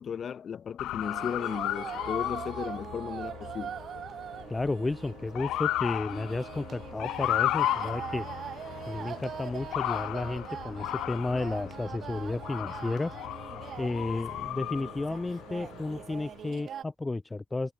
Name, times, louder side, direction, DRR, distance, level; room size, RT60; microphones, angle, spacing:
voice 1, 0.0-3.7, left 7 dB, 55° left, 3.2 m, -35 dB
Motor vehicle (road) / Siren, 0.8-16.3, left 14 dB, 85° left, 0.3 m, -35 dB
sound 1, 1.0-16.8, right 9 dB, 60° right, 1.8 m, -42 dB
voice 2, 4.5-8.3 8.9-13.2 13.8-17.7, left 2 dB, 20° left, 0.5 m, -32 dB
cardioid pair, 90°, 0 cm